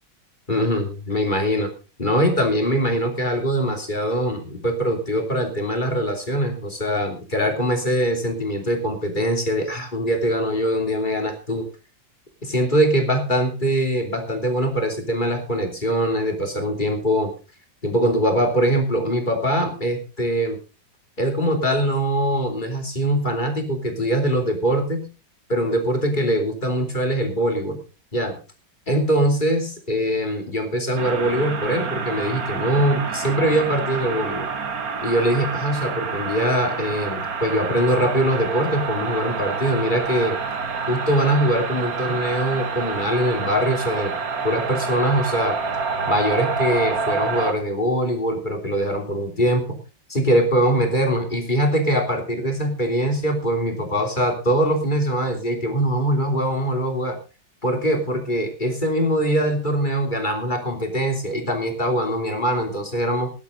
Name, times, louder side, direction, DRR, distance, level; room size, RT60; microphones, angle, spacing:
voice 1, 0.5-1.7 2.0-11.7 12.4-17.3 17.8-20.6 21.2-25.1 25.5-27.8 28.1-28.4 28.9-34.5 35.0-40.4 40.9-44.1 44.4-45.6 46.0-49.8 50.1-57.2 57.6-63.3, equal, 25° left, 3 dB, 3.2 m, -22 dB
sound 1, 31.0-47.5, right 5 dB, 50° right, 1.8 m, -28 dB
17.0 x 12.0 x 4.0 m, 0.33 s
omnidirectional pair, 2.1 m